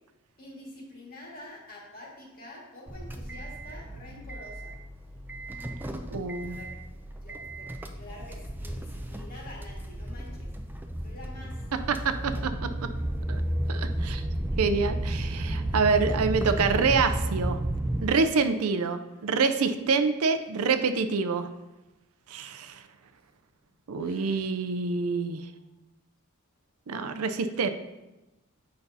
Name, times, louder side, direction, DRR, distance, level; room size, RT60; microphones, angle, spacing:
voice 1, 0.4-4.8 6.4-7.0 7.2-10.5 11.0-11.7 23.9-24.4 25.4-25.7, left 1 dB, 45° left, -3 dB, 1.9 m, -47 dB
sound 1, 2.9-18.1, right 1 dB, 10° right, 0.4 m, -33 dB
voice 2, 6.1-6.6 11.9-12.5 13.3-13.4 13.7-14.2 14.6-17.6 18.0-21.5 22.3-22.8 23.9-25.4 26.9-27.7, right 4 dB, 85° right, 9 dB, 0.5 m, -26 dB
8.1 x 5.2 x 2.7 m, 1.0 s
head